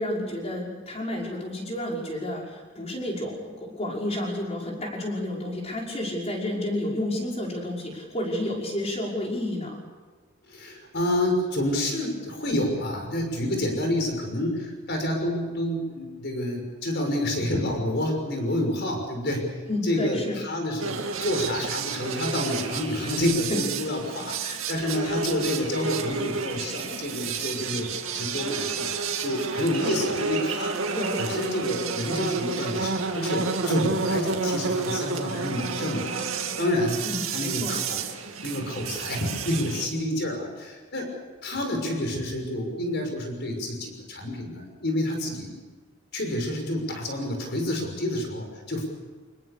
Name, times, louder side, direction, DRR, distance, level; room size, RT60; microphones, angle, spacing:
voice 1, 0.0-9.8 19.7-20.4 23.0-23.1 24.4-24.6 25.0-25.1 30.9-31.2 37.0-37.7, left 1 dB, 30° left, -2 dB, 5.7 m, -31 dB
voice 2, 10.5-27.9 28.1-30.8 31.2-37.1 37.3-38.0 38.4-41.1 41.4-45.5 46.1-48.9, left 1 dB, 50° left, 3 dB, 6.2 m, -28 dB
sound 1, 20.8-39.9, right 4 dB, 70° right, 2.3 m, -30 dB
26.0 x 21.0 x 6.9 m, 1.4 s
head